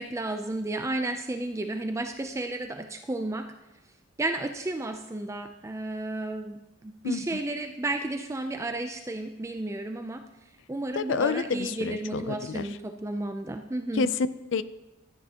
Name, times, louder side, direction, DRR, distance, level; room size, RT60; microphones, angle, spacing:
voice 1, 0.0-3.5 4.2-10.2 10.7-14.1, right 2 dB, 15° right, 6 dB, 0.4 m, -32 dB
voice 2, 11.0-12.7 13.9-14.6, left 5 dB, 60° left, 14 dB, 0.4 m, -28 dB
13.5 x 9.1 x 2.9 m, 1.0 s
head